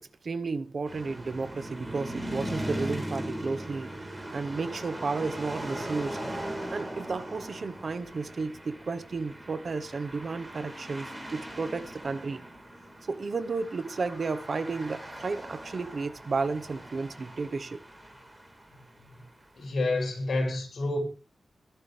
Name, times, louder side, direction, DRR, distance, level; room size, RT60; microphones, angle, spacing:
voice 1, 0.0-3.9 4.3-6.2 6.7-12.4 13.1-17.8, right 4 dB, 50° right, 1.1 m, -33 dB
sound 1, 0.9-19.3, right 1 dB, 15° right, 4.2 m, -39 dB
voice 2, 19.5-21.0, left 2 dB, 70° left, 7.3 m, -29 dB
21.5 x 11.0 x 3.4 m
wide cardioid pair, 135°, 0 cm